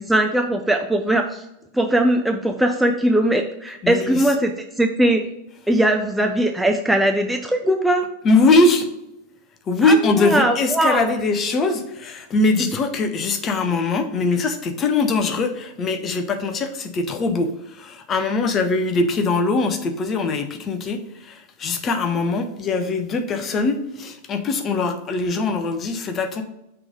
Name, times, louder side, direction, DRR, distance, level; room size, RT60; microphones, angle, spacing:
voice 1, 0.0-1.4 1.7-4.5 4.8-5.2 5.7-8.1 9.8-11.1, right 1 dB, 5° right, 4 dB, 0.4 m, -20 dB
voice 2, 3.8-4.3 8.2-8.9 9.7-26.4, left 3 dB, 25° left, 6 dB, 0.7 m, -21 dB
6.0 x 3.2 x 5.1 m, 0.87 s
figure-of-eight pair, 90°, 0 cm